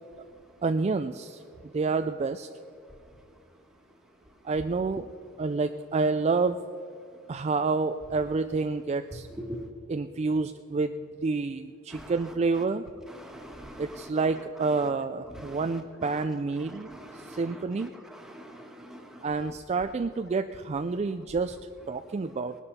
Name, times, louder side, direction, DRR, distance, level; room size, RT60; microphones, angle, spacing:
voice 1, 0.6-1.4 1.7-2.5 4.4-5.1 5.4-6.6 7.3-9.3 9.9-12.8 13.8-16.9 17.1-17.9 19.2-21.6 21.9-22.5, right 4 dB, 30° right, 8 dB, 0.3 m, -28 dB
voice 2, 11.9-12.6 13.0-14.9 15.2-16.3 16.6-19.5, equal, ahead, 1 dB, 1.6 m, -45 dB
19.5 x 12.0 x 4.2 m, 2.5 s
head